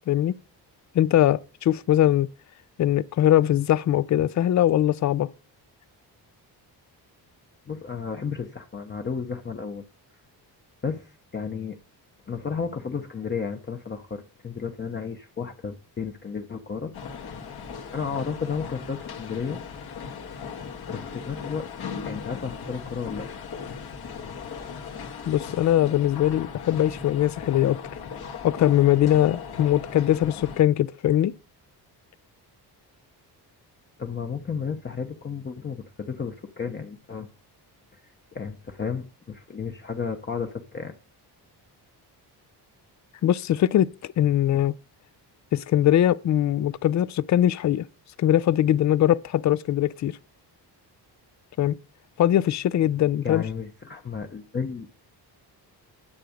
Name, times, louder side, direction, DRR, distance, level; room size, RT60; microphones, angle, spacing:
voice 1, 0.9-2.3 2.8-5.3 25.3-27.8 28.4-31.3 43.2-44.7 45.5-47.8 48.2-50.1 51.6-51.8 52.2-53.4, left 12 dB, 45° left, 0.4 m, -21 dB
voice 2, 7.7-9.8 10.8-11.8 12.3-16.9 17.7-19.6 20.9-21.7 22.0-23.3 34.0-37.3 37.9-38.0 38.3-40.9 53.2-54.9, left 6 dB, 25° left, 0.8 m, -33 dB
sound 1, 16.9-30.6, left 6 dB, 65° left, 2.0 m, -38 dB
9.8 x 7.6 x 5.1 m
cardioid pair, 150°, 41 cm